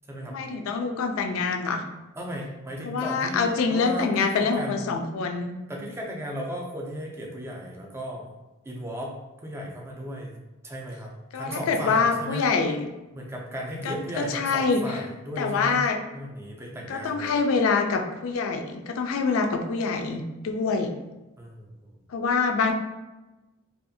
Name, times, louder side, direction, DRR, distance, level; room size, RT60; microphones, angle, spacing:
voice 1, 0.3-1.9 2.8-5.6 11.3-12.9 13.8-14.8 15.4-16.0 16.9-20.9 22.1-22.7, left 4 dB, 70° left, 5 dB, 0.3 m, -25 dB
voice 2, 2.2-4.8 5.7-8.3 8.6-9.1 9.4-10.4 10.6-12.4 13.1-15.8 16.1-17.4 21.4-21.9, equal, 10° right, -1 dB, 0.4 m, -35 dB
2.6 x 2.3 x 2.6 m, 1.1 s
head